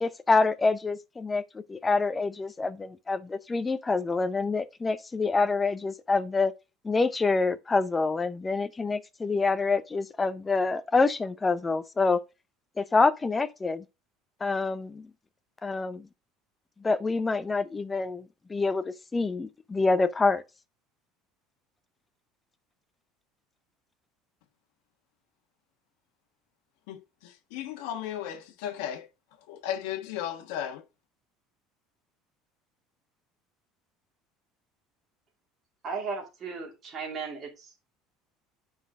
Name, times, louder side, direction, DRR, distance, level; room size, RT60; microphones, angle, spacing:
voice 1, 0.0-6.5 6.8-12.2 12.8-13.8 14.4-15.1 15.6-16.1 16.8-18.2 18.5-20.4, left 3 dB, 10° left, 0.5 m, -26 dB
voice 2, 26.9-29.1 29.5-30.8, left 10 dB, 80° left, 1.2 m, -35 dB
voice 3, 35.8-37.7, right 5 dB, 25° right, 2.7 m, -36 dB
8.8 x 5.2 x 3.6 m
cardioid pair, 180°, 0 cm